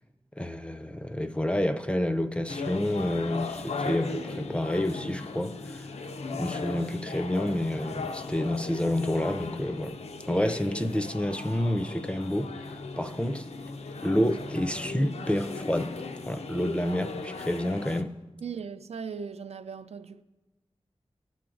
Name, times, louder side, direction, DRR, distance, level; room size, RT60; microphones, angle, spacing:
voice 1, 0.4-5.9 6.3-10.0 10.3-12.5 13.0-13.5 14.0-15.9 16.3-18.1, left 1 dB, 10° left, 0.4 m, -29 dB
sound 1, 2.5-18.0, left 4 dB, 75° left, 0.5 m, -37 dB
voice 2, 18.4-20.2, right 6 dB, 75° right, 0.4 m, -38 dB
14.5 x 5.8 x 2.5 m
wide cardioid pair, 50°, 11 cm